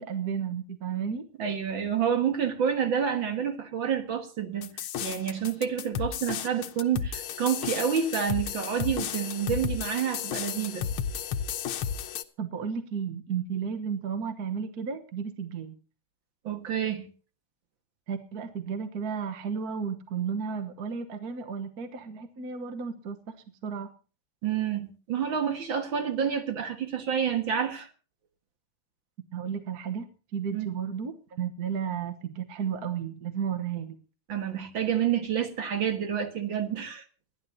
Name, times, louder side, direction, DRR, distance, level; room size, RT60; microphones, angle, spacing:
voice 1, 0.0-1.3 12.4-15.7 18.1-23.2 23.6-23.9 29.3-34.0, right 7 dB, 50° right, 1.6 m, -33 dB
voice 2, 1.4-10.8 16.4-17.1 24.4-27.9 30.5-30.7 34.3-37.0, right 8 dB, 70° right, 2.5 m, -29 dB
sound 1, 4.6-12.2, left 8 dB, 85° left, 1.8 m, -33 dB
27.5 x 11.0 x 2.8 m
omnidirectional pair, 2.3 m